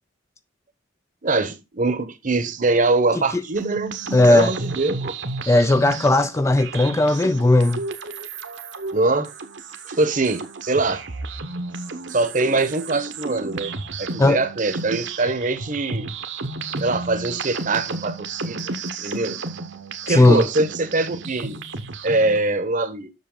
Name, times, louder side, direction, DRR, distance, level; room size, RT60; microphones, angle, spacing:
voice 1, 1.2-3.9 4.3-5.1 8.9-9.3 9.9-11.0 12.1-13.7 14.0-16.1 16.8-18.6 19.0-19.4 20.1-21.6 22.0-23.1, right 2 dB, 40° right, 1.0 m, -23 dB
sound 1, 3.5-22.4, right 3 dB, 60° right, 1.1 m, -32 dB
voice 2, 4.1-4.5 5.5-7.8 14.2-14.4 20.1-20.5, left 2 dB, 15° left, 0.3 m, -16 dB
7.5 x 6.4 x 3.8 m
head